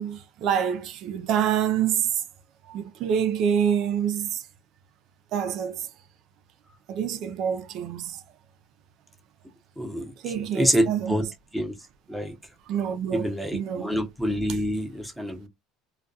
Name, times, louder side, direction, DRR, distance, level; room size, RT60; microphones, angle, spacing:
voice 1, 0.0-2.1 2.7-4.4 5.3-5.9 6.9-8.2 10.2-11.2 12.1-12.2 12.7-13.9, right 8 dB, 55° right, 0.4 m, -27 dB
voice 2, 9.8-10.1 10.5-11.2 11.5-11.7 12.1-12.3 13.1-15.5, equal, ahead, 0.7 m, -26 dB
2.2 x 2.2 x 2.6 m
cardioid pair, 135°, 0 cm